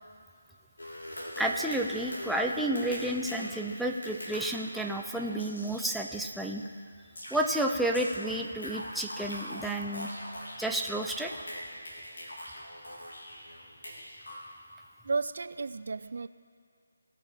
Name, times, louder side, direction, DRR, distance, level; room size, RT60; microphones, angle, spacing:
sound 1, 0.8-6.1 7.1-14.4, equal, 85° left, 3.0 m, -42 dB
voice 1, 1.4-6.6 7.3-10.1 10.6-11.3, right 1 dB, ahead, 0 dB, 0.5 m, -31 dB
voice 2, 15.0-16.3, right 4 dB, 60° right, 14 dB, 0.3 m, -33 dB
18.0 x 6.6 x 4.9 m, 2.2 s
figure-of-eight pair, 165°, 0 cm